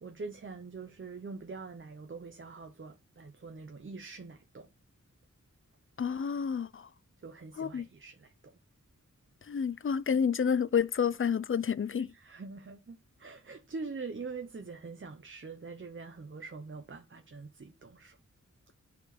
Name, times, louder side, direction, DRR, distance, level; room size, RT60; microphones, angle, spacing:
voice 1, 0.0-4.7 7.2-8.5 12.0-18.2, right 4 dB, 40° right, 0.8 m, -44 dB
voice 2, 6.0-6.9 7.6-7.9 9.5-12.1, left 7 dB, 45° left, 0.5 m, -29 dB
8.8 x 4.5 x 4.1 m
wide cardioid pair, 70°, 31 cm